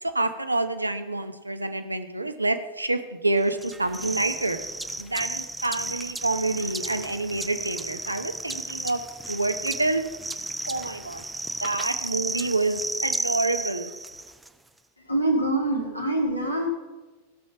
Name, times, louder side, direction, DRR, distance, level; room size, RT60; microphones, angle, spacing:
voice 1, 0.0-4.6 5.0-10.0 10.7-11.2 11.6-13.9, right 2 dB, 85° right, 9 dB, 0.8 m, -27 dB
sound 1, 3.6-14.5, right 2 dB, 5° right, 0.5 m, -33 dB
voice 2, 15.0-16.7, right 1 dB, 85° left, 1 dB, 2.2 m, -25 dB
15.5 x 6.6 x 5.7 m, 1.2 s
figure-of-eight pair, 90°, 0 cm